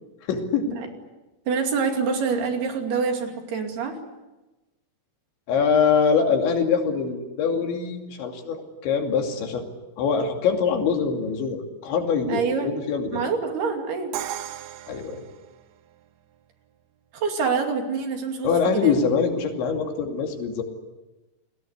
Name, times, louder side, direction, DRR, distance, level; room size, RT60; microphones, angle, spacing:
voice 1, 0.3-0.8 5.5-9.6 10.0-13.2 14.9-15.3 18.4-20.6, left 6 dB, 70° left, 3 dB, 4.8 m, -23 dB
voice 2, 1.5-4.0 12.3-12.8 13.1-14.1 17.1-19.0, right 5 dB, 60° right, 4 dB, 4.3 m, -26 dB
Crash cymbal, 14.1-16.1, right 12 dB, 90° right, 3.6 m, -36 dB
30.0 x 20.5 x 8.2 m, 1.1 s
omnidirectional pair, 5.5 m